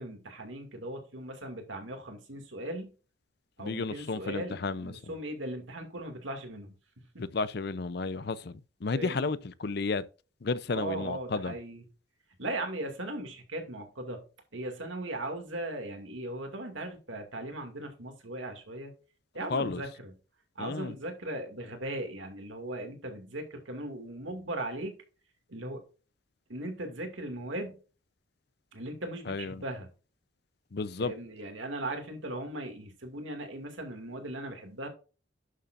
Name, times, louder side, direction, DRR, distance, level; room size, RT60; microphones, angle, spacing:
voice 1, 0.0-2.9 3.6-7.2 8.9-9.3 10.7-11.8 12.4-14.2 14.5-18.9 19.3-20.1 20.6-24.9 25.5-25.8 26.5-27.8 28.7-29.9 31.0-34.9, right 1 dB, 80° right, 2.2 m, -38 dB
voice 2, 3.6-5.1 7.2-10.0 10.4-11.5 19.5-19.8 20.6-20.9 29.3-29.6 30.7-31.1, left 3 dB, 55° left, 0.6 m, -32 dB
11.0 x 6.9 x 2.5 m
head